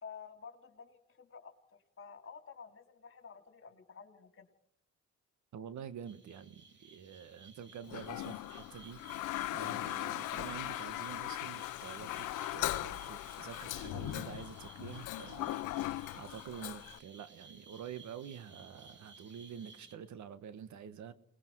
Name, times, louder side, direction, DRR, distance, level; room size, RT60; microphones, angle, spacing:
voice 1, 0.0-4.5, left 6 dB, 45° left, 3.3 m, -51 dB
voice 2, 5.5-9.2 9.5-15.6 16.1-21.1, right 8 dB, 70° right, 1.4 m, -47 dB
sound 1, 6.1-20.0, right 3 dB, 40° right, 3.4 m, -57 dB
Toilet flush, 7.9-17.0, left 16 dB, 85° left, 0.7 m, -39 dB
28.0 x 20.5 x 4.7 m
cardioid pair, 90°, 30 cm